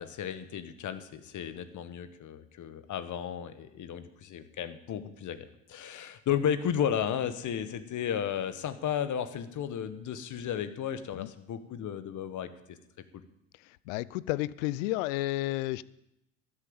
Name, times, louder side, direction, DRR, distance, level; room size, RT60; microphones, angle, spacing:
voice 1, 0.0-12.8 13.1-13.2, left 9 dB, 50° left, 12 dB, 1.5 m, -34 dB
voice 2, 13.6-15.8, left 18 dB, 80° left, 21 dB, 0.6 m, -32 dB
12.5 x 9.0 x 8.8 m, 0.84 s
hypercardioid pair, 70°, 38 cm